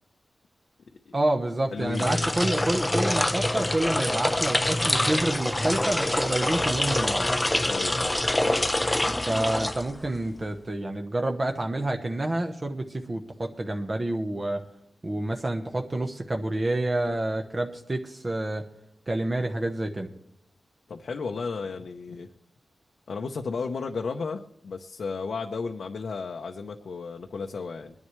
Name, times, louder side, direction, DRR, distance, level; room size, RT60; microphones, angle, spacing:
voice 1, 1.1-7.3 9.1-14.6 15.0-18.6 19.1-20.1, right 1 dB, 30° right, 3 dB, 1.0 m, -28 dB
voice 2, 1.7-2.3 7.6-8.1 20.9-22.3 23.1-27.9, left 4 dB, 75° left, 3 dB, 0.8 m, -33 dB
sound 1, 1.8-10.2, left 1 dB, 15° left, 0.6 m, -26 dB
21.5 x 11.0 x 3.2 m, 0.74 s
wide cardioid pair, 90°, 0 cm